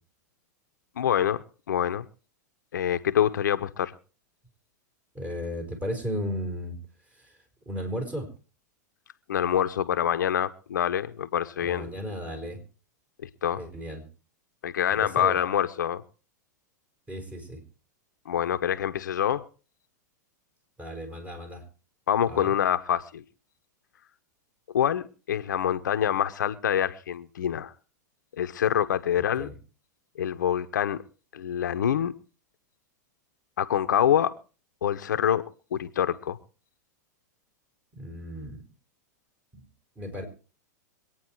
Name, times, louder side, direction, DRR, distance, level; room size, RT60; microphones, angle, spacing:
voice 1, 1.0-2.0 2.7-3.9 9.3-11.9 13.2-13.6 14.6-16.0 18.3-19.5 22.1-23.2 24.7-27.7 28.4-29.5 30.2-31.0 31.3-32.1 33.6-34.3 34.8-35.4 35.7-36.4, left 9 dB, 80° left, 0.9 m, -26 dB
voice 2, 5.1-6.8 7.7-8.3 11.6-12.6 13.6-14.0 14.9-15.4 17.1-17.6 20.8-21.6 22.3-22.5 29.4-29.5 37.9-38.6 39.5-39.6 40.0-40.2, equal, 15° right, 5.4 m, -34 dB
24.0 x 9.3 x 4.6 m
hypercardioid pair, 110°, 10 cm